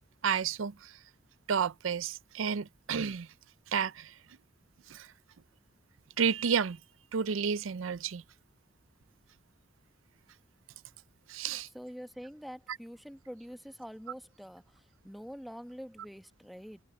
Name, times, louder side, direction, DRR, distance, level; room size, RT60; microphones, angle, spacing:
voice 1, 0.2-1.0 1.5-3.3 3.7-4.2 4.9-5.1 6.2-6.8 7.1-8.2 11.3-11.7, right 6 dB, 85° right, 0.5 m, -31 dB
voice 2, 11.7-16.8, equal, ahead, 1.0 m, -46 dB
open air
head